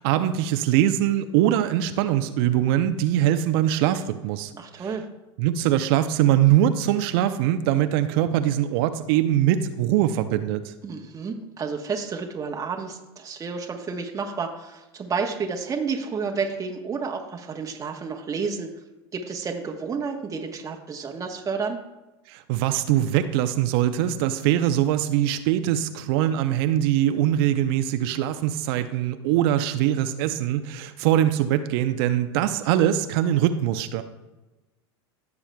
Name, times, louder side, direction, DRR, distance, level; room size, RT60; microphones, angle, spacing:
voice 1, 0.0-4.5 4.8-4.9 5.4-10.7 22.3-34.0, right 12 dB, 60° right, 9 dB, 0.6 m, -22 dB
voice 2, 4.5-5.0 10.8-18.7 19.1-21.8, right 5 dB, 25° right, 2 dB, 1.1 m, -30 dB
15.5 x 7.0 x 2.2 m, 1.1 s
hypercardioid pair, 90°, 14 cm